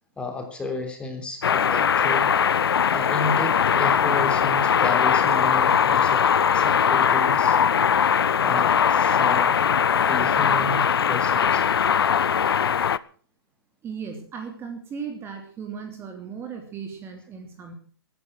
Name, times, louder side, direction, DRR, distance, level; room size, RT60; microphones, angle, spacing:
voice 1, 0.2-2.3 2.9-6.2 6.5-7.6 8.4-9.7 9.9-11.6, left 2 dB, 10° left, 5 dB, 3.6 m, -32 dB
sound 1, 1.4-13.0, left 7 dB, 75° left, 0.8 m, -20 dB
voice 2, 13.8-17.7, right 6 dB, 20° right, 4 dB, 3.0 m, -36 dB
16.0 x 14.0 x 6.1 m, 0.43 s
hypercardioid pair, 135°, 13 cm